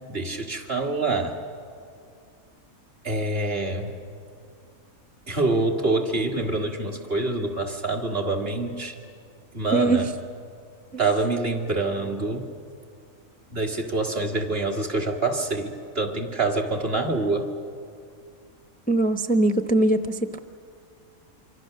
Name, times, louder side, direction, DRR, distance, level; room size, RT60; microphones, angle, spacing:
voice 1, 0.1-1.4 3.0-3.9 5.3-9.0 9.5-10.1 11.0-12.5 13.5-17.5, right 3 dB, 45° right, 1 dB, 2.1 m, -26 dB
voice 2, 9.7-10.0 10.9-11.0 18.9-20.4, right 2 dB, 15° left, 6 dB, 0.3 m, -21 dB
26.5 x 25.0 x 6.6 m, 2.3 s
omnidirectional pair, 1.5 m